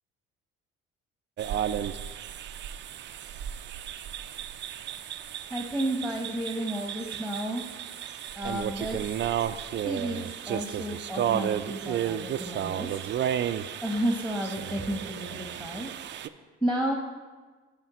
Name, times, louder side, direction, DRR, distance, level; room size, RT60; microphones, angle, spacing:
sound 1, 1.4-16.3, right 10 dB, 35° right, 0.4 m, -33 dB
voice 1, 5.5-7.6 8.4-9.2 9.8-13.0 13.8-15.9 16.6-16.9, right 1 dB, 5° left, 1 dB, 1.0 m, -32 dB
11.0 x 5.5 x 3.0 m, 1.4 s
hypercardioid pair, 55°, 34 cm